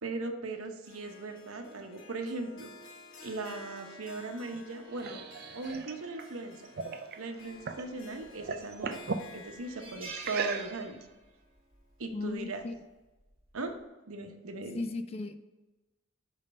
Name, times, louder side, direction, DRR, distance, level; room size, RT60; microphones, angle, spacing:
voice 1, 0.0-2.7 3.2-5.2 5.5-6.6 7.2-9.0 9.3-11.0 12.0-12.6 13.5-13.7 14.1-14.8, right 3 dB, 70° right, 5 dB, 0.9 m, -38 dB
Harp, 0.8-12.1, left 2 dB, 55° left, 1.0 m, -53 dB
sound 1, 4.5-7.9 8.2-9.3 10.2-11.0, right 5 dB, 45° right, 0.4 m, -38 dB
sound 2, 8.2-8.7 9.1-9.2 9.6-11.4 11.7-11.9 13.2-13.5, right 4 dB, 25° right, 1.3 m, -45 dB
voice 2, 12.1-12.7 14.7-15.3, left 2 dB, 25° left, 9 dB, 0.4 m, -36 dB
5.4 x 5.3 x 5.2 m, 1.1 s
head